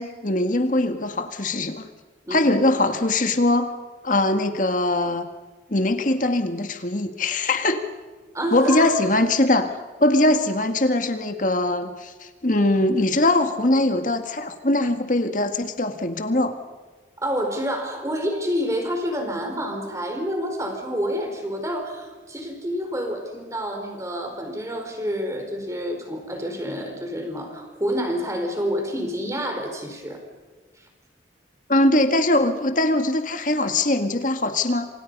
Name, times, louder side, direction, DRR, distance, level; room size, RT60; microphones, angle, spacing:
voice 1, 0.0-1.8 2.3-3.7 4.0-5.3 5.7-7.8 8.5-16.5 31.7-34.9, left 1 dB, 45° left, 7 dB, 1.9 m, -21 dB
voice 2, 8.3-9.0 17.2-30.2, equal, 15° right, 4 dB, 4.5 m, -28 dB
27.5 x 26.5 x 5.5 m, 1.4 s
head